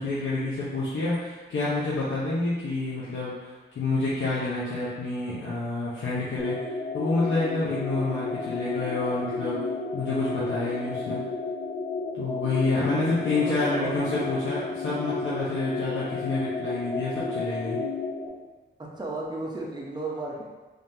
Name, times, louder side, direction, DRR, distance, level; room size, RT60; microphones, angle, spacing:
voice 1, 0.0-9.6 9.9-11.2 12.1-17.8, left 2 dB, 80° left, -8 dB, 0.8 m, -28 dB
sound 1, 6.4-18.3, left 3 dB, 55° left, 1.2 m, -32 dB
voice 2, 12.6-14.0 18.8-20.4, right 2 dB, 20° right, -4 dB, 0.8 m, -35 dB
3.6 x 3.5 x 2.8 m, 1.2 s
wide cardioid pair, 130°, 20 cm